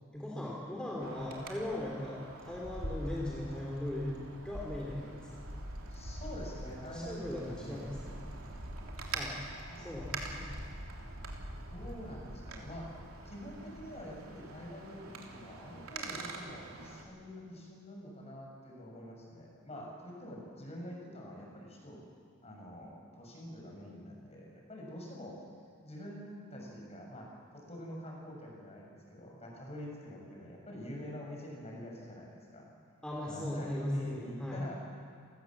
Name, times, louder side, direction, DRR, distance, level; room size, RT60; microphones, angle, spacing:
voice 1, 0.1-5.4 6.9-8.2 9.1-9.3 9.8-10.6 33.0-34.6, left 1 dB, 5° left, -4 dB, 3.4 m, -38 dB
Wind, 1.0-17.0, right 2 dB, 80° right, 3.2 m, -44 dB
voice 2, 5.9-7.9 9.5-11.3 11.7-12.9 13.2-22.0 22.4-25.4 25.8-32.7 33.2-34.9, equal, 30° left, -1 dB, 6.3 m, -46 dB
29.0 x 18.5 x 7.5 m, 2.2 s
head